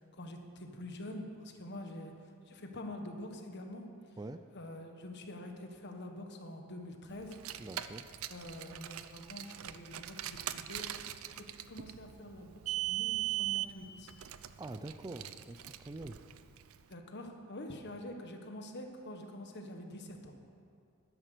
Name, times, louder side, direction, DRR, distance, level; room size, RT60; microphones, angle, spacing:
voice 1, 0.0-2.1 2.5-3.8 4.5-7.4 8.3-10.9 11.3-14.1 16.9-20.4, left 1 dB, 55° left, 4 dB, 1.4 m, -46 dB
Car, 7.2-16.8, right 15 dB, 75° right, 0.5 m, -40 dB
voice 2, 7.6-8.0 14.6-15.6 15.8-16.2, right 2 dB, 20° right, 9 dB, 0.4 m, -44 dB
12.0 x 10.0 x 6.7 m, 2.4 s
head